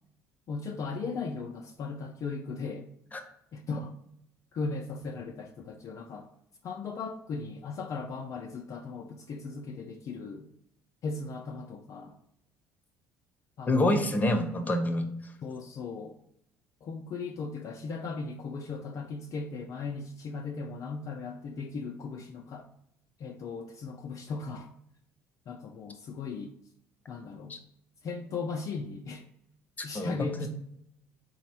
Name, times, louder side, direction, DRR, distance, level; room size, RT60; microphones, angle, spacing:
voice 1, 0.5-2.9 3.5-3.9 4.5-6.3 6.6-10.5 11.0-12.2 13.6-13.7 14.0-14.2 15.4-16.2 16.8-22.7 23.2-24.7 25.5-26.5 27.1-27.6 28.0-29.2 29.8-30.5, left 4 dB, 50° left, 3 dB, 0.4 m, -37 dB
voice 2, 13.7-15.3 27.5-27.6 29.8-30.5, left 1 dB, 25° left, 6 dB, 0.7 m, -27 dB
4.1 x 2.0 x 4.3 m, 0.75 s
supercardioid pair, 70°, 7 cm